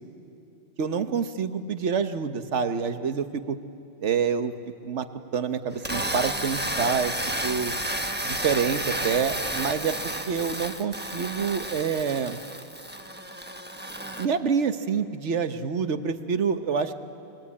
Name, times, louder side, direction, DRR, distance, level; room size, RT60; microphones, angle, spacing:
voice 1, 0.8-3.6 4.0-4.5 4.8-5.1 5.3-7.1 7.4-7.7 8.2-10.0 10.3-12.4 14.2-16.9, right 6 dB, 65° right, 9 dB, 1.4 m, -27 dB
sound 1, 5.7-14.3, right 1 dB, 10° right, 1.0 m, -31 dB
30.0 x 23.0 x 8.5 m, 2.6 s
omnidirectional pair, 1.3 m